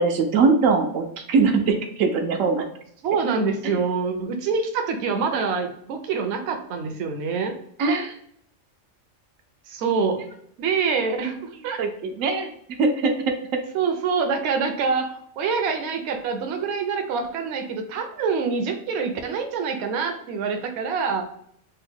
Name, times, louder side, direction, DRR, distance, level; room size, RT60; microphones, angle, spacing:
voice 1, 0.0-2.6 3.6-3.7 7.8-8.1 11.8-12.5 12.8-13.1, right 4 dB, 85° right, 4 dB, 1.0 m, -21 dB
voice 2, 3.0-7.6 9.7-10.2 10.6-11.8 13.7-21.2, right 5 dB, 65° right, 5 dB, 0.8 m, -25 dB
3.8 x 2.1 x 4.3 m, 0.67 s
omnidirectional pair, 1.3 m